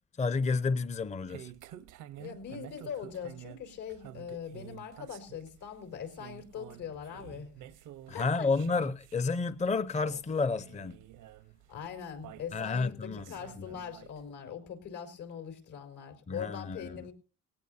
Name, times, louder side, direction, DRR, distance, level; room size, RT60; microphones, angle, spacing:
voice 1, 0.2-1.5 8.1-11.0 12.5-13.3 16.3-17.1, left 4 dB, 25° left, 0.7 m, -30 dB
sound 1, 0.7-14.3, right 12 dB, 85° right, 1.0 m, -51 dB
voice 2, 2.2-7.5 8.1-8.5 11.7-17.1, left 7 dB, 75° left, 4.8 m, -42 dB
19.5 x 17.5 x 2.7 m
cardioid pair, 90°, 30 cm